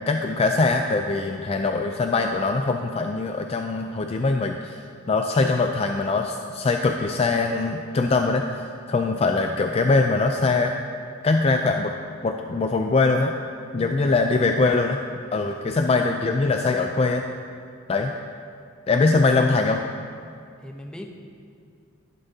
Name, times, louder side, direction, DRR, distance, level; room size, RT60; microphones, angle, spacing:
voice 1, 0.0-4.8 5.1-8.4 8.9-10.7 11.2-11.9 12.2-13.3 13.7-15.0 15.3-17.2 17.9-18.1 18.9-19.8, left 3 dB, 30° left, 4 dB, 0.4 m, -22 dB
voice 2, 13.8-14.1 20.6-21.1, left 1 dB, 5° left, 2 dB, 0.7 m, -38 dB
11.5 x 11.5 x 2.8 m, 2.4 s
head